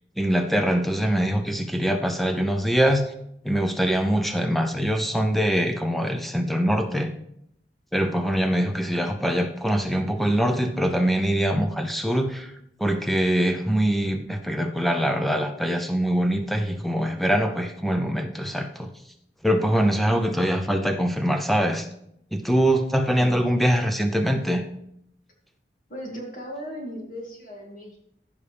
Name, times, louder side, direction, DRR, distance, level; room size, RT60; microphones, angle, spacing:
voice 1, 0.2-3.0 3.4-7.1 7.9-12.5 12.8-18.9 19.4-21.9 22.3-24.6, equal, ahead, 6 dB, 0.6 m, -23 dB
voice 2, 25.9-28.0, equal, 50° left, -1 dB, 2.3 m, -37 dB
14.5 x 5.6 x 3.4 m, 0.76 s
head